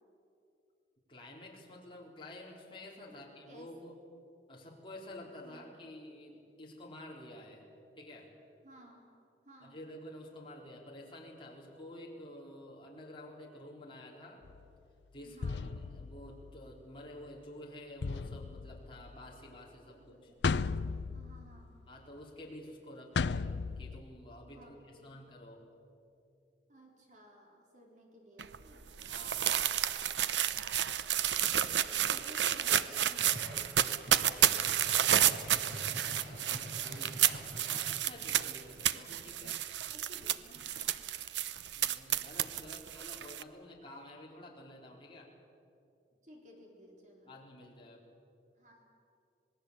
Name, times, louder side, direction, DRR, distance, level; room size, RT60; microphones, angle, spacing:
voice 1, 1.1-4.0 4.5-7.7 8.0-8.3 9.6-14.4 15.1-20.3 21.9-23.5 23.8-25.6 29.0-29.7 31.8-32.5 36.2-37.5 37.7-39.6 41.7-45.3 47.3-48.0, left 1 dB, 30° left, -2 dB, 4.1 m, -50 dB
voice 2, 3.1-3.7 5.4-5.6 8.6-9.0 9.5-9.8 15.2-15.7 19.9-20.6 21.1-21.7 24.4-25.1 26.7-28.9 30.4-30.6 31.5-33.7 34.1-36.0 38.9-39.3 39.8-41.1 42.6-42.8 46.2-47.3 48.6-48.8, equal, 45° right, 0 dB, 4.1 m, -57 dB
sound 1, 14.4-14.7 15.4-16.8 18.0-19.4 20.4-21.9 23.1-24.0, left 4 dB, 80° left, 0.5 m, -36 dB
sound 2, 28.4-43.4, right 10 dB, 90° right, 0.8 m, -31 dB
sound 3, 33.2-38.4, right 1 dB, 75° right, 5.2 m, -46 dB
26.5 x 19.5 x 8.2 m, 2.7 s
head